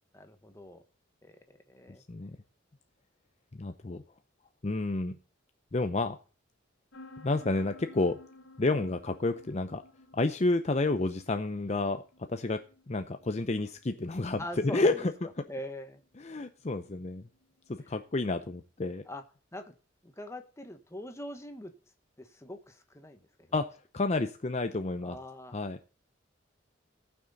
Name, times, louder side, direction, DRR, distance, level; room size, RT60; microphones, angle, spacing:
voice 1, 0.1-0.8 1.2-1.4 1.7-2.0 14.4-15.1 15.5-16.0 17.9-18.0 19.1-19.2 19.5-19.7 20.0-21.7 22.2-23.5 25.0-25.6, left 1 dB, 15° left, 6 dB, 1.3 m, -43 dB
voice 2, 3.5-4.0 4.6-5.1 5.7-6.2 7.2-8.2 8.6-9.8 10.1-12.0 12.3-12.6 12.9-15.1 16.2-17.2 17.7-19.0 23.5-25.2 25.5-25.8, left 2 dB, 35° left, 8 dB, 0.6 m, -30 dB
sound 1, 6.9-18.4, left 2 dB, 85° left, 1.3 m, -56 dB
18.0 x 6.1 x 4.0 m, 0.37 s
head